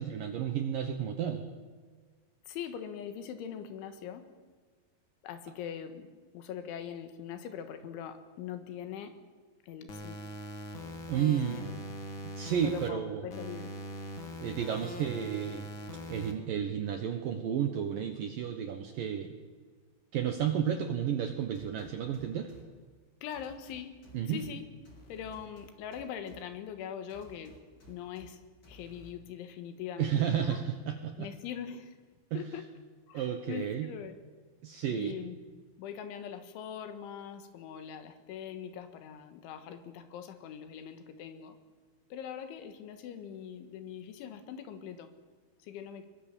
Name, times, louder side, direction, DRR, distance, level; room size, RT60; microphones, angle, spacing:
voice 1, 0.0-1.5 11.1-11.6 12.4-13.2 14.4-15.7 16.1-19.4 20.1-22.5 24.1-24.4 30.0-31.3 32.3-32.4 33.1-33.9 34.6-35.2, right 9 dB, 70° right, 6 dB, 2.2 m, -32 dB
voice 2, 2.5-4.3 5.2-9.2 9.6-10.2 11.5-11.6 12.6-13.7 23.2-24.0 24.3-24.6 25.1-27.6 27.9-30.6 31.2-32.0 32.3-32.7 33.1-34.2 34.9-41.6 42.1-45.1 45.6-46.1, left 8 dB, 80° left, 9 dB, 3.9 m, -42 dB
sound 1, 9.9-12.9 13.3-16.3, equal, 50° left, 1.5 m, -42 dB
sound 2, 21.5-22.6 23.3-24.5 24.9-26.4 27.1-28.3 28.6-29.1, equal, 25° left, 3.8 m, -55 dB
22.0 x 21.5 x 7.2 m, 1.5 s
omnidirectional pair, 5.5 m